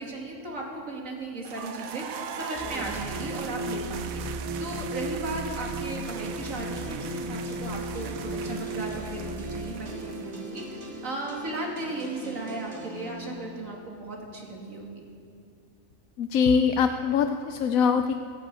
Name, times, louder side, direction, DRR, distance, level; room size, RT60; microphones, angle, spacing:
voice 1, 0.0-14.9, right 2 dB, 70° right, -1 dB, 2.8 m, -36 dB
sound 1, 1.4-11.2, right 8 dB, 90° right, 1.2 m, -41 dB
sound 2, 2.5-9.7, right 2 dB, 15° right, 1.1 m, -35 dB
sound 3, 6.0-13.7, right 1 dB, 55° right, 2.9 m, -41 dB
voice 2, 16.2-18.1, left 6 dB, 80° left, 7 dB, 1.1 m, -23 dB
14.5 x 11.0 x 8.2 m, 2.3 s
omnidirectional pair, 1.4 m